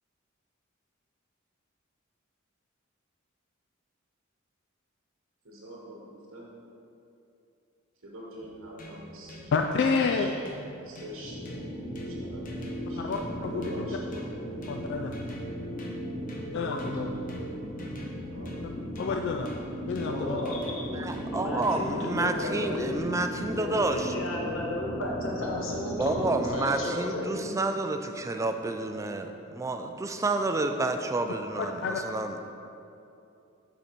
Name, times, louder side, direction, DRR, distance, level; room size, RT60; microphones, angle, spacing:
voice 1, 5.4-6.5 8.0-9.7 10.1-10.3 10.8-11.5 12.0-12.6 12.9-13.1 13.3-14.5 16.4-17.5 18.3-18.8, right 1 dB, 70° right, -3 dB, 1.0 m, -44 dB
sound 1, 8.4-22.1, left 1 dB, 45° left, 0.9 m, -47 dB
voice 2, 9.5-10.3 13.0-13.6 14.7-15.2 16.5-17.2 19.0-19.5 19.9-20.4 31.6-32.0, left 4 dB, 60° left, 4 dB, 0.3 m, -29 dB
sound 2, 11.2-26.5, equal, 15° left, 0.7 m, -37 dB
voice 3, 20.0-20.8 21.3-23.0 23.5-27.5, left 1 dB, 75° left, -3 dB, 1.4 m, -33 dB
voice 4, 20.9-24.1 25.9-32.4, right 2 dB, 15° right, 6 dB, 0.3 m, -29 dB
7.3 x 4.1 x 5.1 m, 2.7 s
head